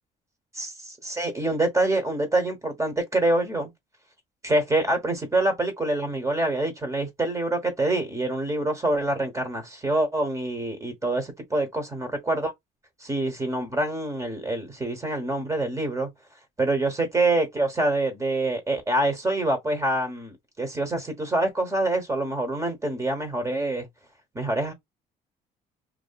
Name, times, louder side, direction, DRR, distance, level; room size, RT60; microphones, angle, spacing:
voice 1, 0.5-3.7 4.4-12.5 13.0-16.1 16.6-23.9 24.3-24.7, right 2 dB, 20° right, 0.9 m, -26 dB
2.5 x 2.5 x 2.3 m
cardioid pair, 110°, 17 cm